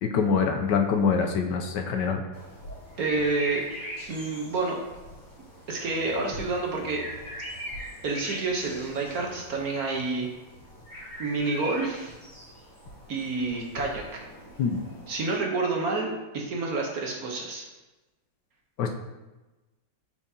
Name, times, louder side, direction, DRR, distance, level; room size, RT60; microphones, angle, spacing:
voice 1, 0.0-2.2 14.6-14.8 18.8-18.9, left 6 dB, 75° left, 4 dB, 1.2 m, -24 dB
sound 1, 2.3-15.4, equal, 35° left, 2.5 m, -42 dB
voice 2, 3.0-3.6 4.1-4.8 5.7-7.0 8.0-10.3 11.2-12.1 13.1-14.2 15.1-17.6, right 3 dB, 60° right, 0 dB, 1.3 m, -29 dB
8.8 x 4.8 x 2.8 m, 1.1 s
omnidirectional pair, 2.0 m